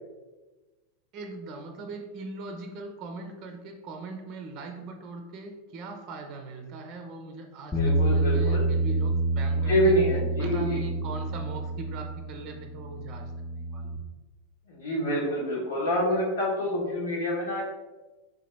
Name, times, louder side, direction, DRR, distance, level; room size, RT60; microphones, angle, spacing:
voice 1, 1.1-9.9 10.4-14.0 15.7-15.8 17.0-17.1, right 3 dB, 40° right, 4 dB, 0.5 m, -40 dB
voice 2, 7.7-8.7 9.5-10.8 14.7-17.6, equal, 70° left, -3 dB, 1.2 m, -27 dB
Bass guitar, 7.7-14.0, right 2 dB, 15° left, 0.6 m, -28 dB
3.5 x 2.8 x 3.3 m, 1.2 s
figure-of-eight pair, 90°, 0 cm